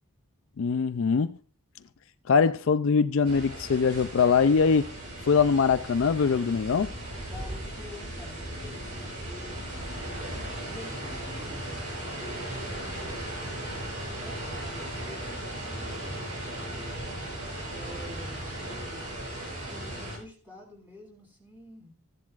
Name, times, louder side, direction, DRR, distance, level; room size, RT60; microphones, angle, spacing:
voice 1, 0.6-1.3 2.3-4.9 5.3-6.9, left 5 dB, 60° left, 0.4 m, -22 dB
sound 1, 3.2-20.2, right 1 dB, 80° right, 6.8 m, -37 dB
voice 2, 7.3-11.6 12.1-16.8 17.7-19.1 19.6-21.9, left 1 dB, 10° right, 5.2 m, -49 dB
16.5 x 10.5 x 2.5 m
head